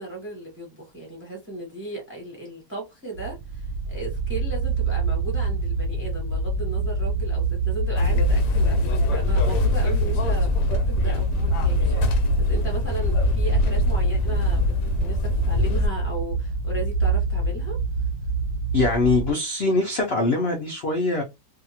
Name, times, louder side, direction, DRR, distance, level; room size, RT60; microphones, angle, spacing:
voice 1, 0.0-8.8 9.1-14.7 15.0-17.8, right 2 dB, 10° right, 0.7 m, -36 dB
sound 1, 3.1-19.3, right 2 dB, 90° right, 1.2 m, -26 dB
sound 2, 8.0-15.9, left 2 dB, 85° left, 1.2 m, -23 dB
voice 2, 18.7-21.2, left 2 dB, 60° left, 0.6 m, -22 dB
2.7 x 2.4 x 2.7 m
omnidirectional pair, 1.7 m